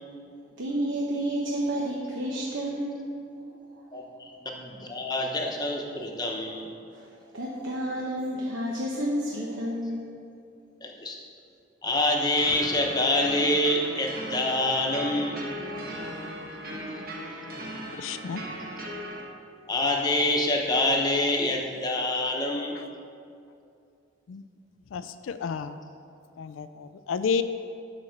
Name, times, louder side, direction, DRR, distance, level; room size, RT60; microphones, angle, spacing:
voice 1, 0.6-3.8 6.9-10.0, right 1 dB, 80° right, -3 dB, 1.0 m, -31 dB
voice 2, 3.9-6.7 10.8-11.2 11.8-15.4 19.7-22.8, left 1 dB, 20° left, 0 dB, 0.9 m, -26 dB
sound 1, 12.4-19.2, right 1 dB, 50° right, 1.2 m, -38 dB
voice 3, 18.0-18.4 22.8-22.9 24.3-24.4 24.9-25.8 26.4-27.4, left 6 dB, 85° left, 11 dB, 0.4 m, -31 dB
11.0 x 4.2 x 6.5 m, 2.5 s
head